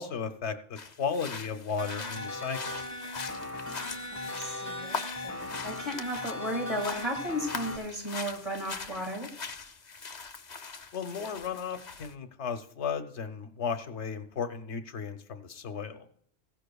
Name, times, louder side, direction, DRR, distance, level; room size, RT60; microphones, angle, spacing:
voice 1, 0.0-2.8 10.9-16.1, left 6 dB, 75° left, 8 dB, 1.1 m, -35 dB
sound 1, 0.8-12.1, left 5 dB, 40° left, 0.9 m, -42 dB
sound 2, 1.8-7.8, left 2 dB, 15° left, 1.2 m, -38 dB
voice 2, 4.1-9.3, equal, 30° right, 1 dB, 1.9 m, -35 dB
15.5 x 12.0 x 2.3 m, 0.67 s
omnidirectional pair, 1.2 m